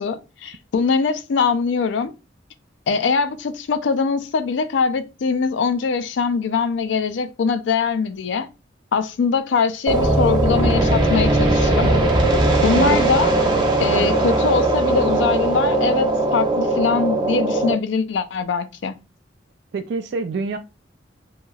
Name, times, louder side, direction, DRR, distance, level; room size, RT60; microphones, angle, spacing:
voice 1, 0.0-2.1 2.9-8.5 8.9-12.0 12.6-13.3 13.8-18.9, left 5 dB, 70° left, 0.4 m, -22 dB
sound 1, 9.9-17.7, right 2 dB, 25° right, 0.6 m, -19 dB
voice 2, 12.6-13.0 13.9-14.2 19.7-20.6, right 4 dB, 65° right, 0.3 m, -26 dB
2.9 x 2.8 x 2.2 m
head